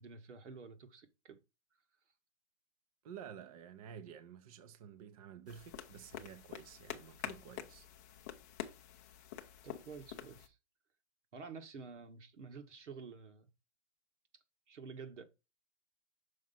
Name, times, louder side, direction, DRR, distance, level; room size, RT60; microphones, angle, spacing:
voice 1, 0.0-1.4 9.6-10.6 11.3-13.5 14.3-15.2, right 5 dB, 75° right, 1.8 m, -50 dB
voice 2, 3.0-7.9, right 8 dB, 30° right, 0.6 m, -51 dB
sound 1, 5.5-10.5, left 10 dB, 15° left, 0.4 m, -47 dB
6.3 x 4.5 x 5.6 m
hypercardioid pair, 150°, 35 cm